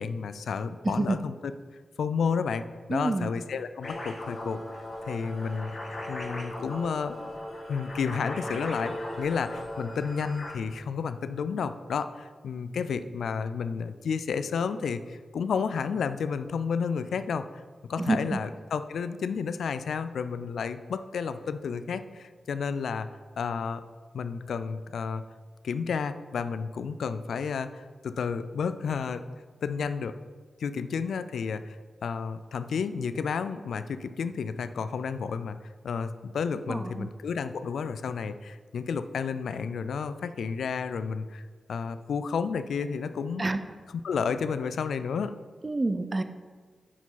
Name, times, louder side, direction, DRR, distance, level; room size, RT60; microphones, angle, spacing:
voice 1, 0.0-1.3 2.0-4.6 5.1-5.8 6.1-7.2 7.7-17.5 17.9-23.1 23.4-23.8 24.1-25.2 25.6-29.2 29.6-30.2 30.6-35.6 35.8-41.4 41.7-43.4 44.0-45.4, left 6 dB, 85° left, 11 dB, 0.3 m, -31 dB
voice 2, 0.8-1.2 2.9-3.3 18.0-18.4 36.7-37.1 43.4-43.6 45.6-46.2, right 2 dB, 35° right, 10 dB, 0.6 m, -28 dB
sound 1, 3.8-10.5, left 1 dB, 60° left, 1.9 m, -38 dB
9.7 x 4.9 x 3.9 m, 1.5 s
cardioid pair, 45°, 0 cm